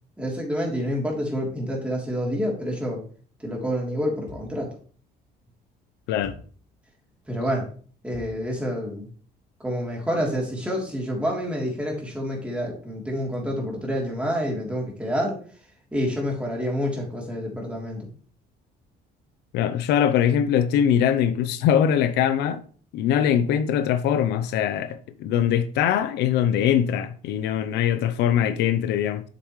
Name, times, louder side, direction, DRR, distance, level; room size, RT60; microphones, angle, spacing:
voice 1, 0.2-3.0 3.4-4.7 7.3-7.7 8.0-9.1 9.6-15.4 15.9-18.1, equal, 5° right, 3.3 m, -28 dB
sound 1, 4.3-4.7 6.2-6.6 8.1-8.5, left 4 dB, 50° left, 2.8 m, -44 dB
voice 2, 19.5-22.6 22.9-29.2, left 9 dB, 85° left, 0.7 m, -22 dB
7.7 x 6.9 x 3.2 m
cardioid pair, 110°, 17 cm